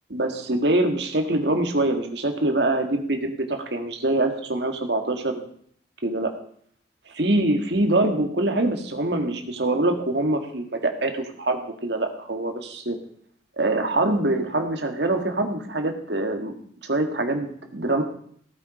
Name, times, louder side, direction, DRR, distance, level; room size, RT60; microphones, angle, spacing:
voice 1, 0.1-5.5 6.0-6.3 7.1-13.0 13.6-16.5 16.8-18.0, right 2 dB, 65° right, 5 dB, 2.0 m, -24 dB
17.5 x 8.6 x 5.0 m, 0.62 s
head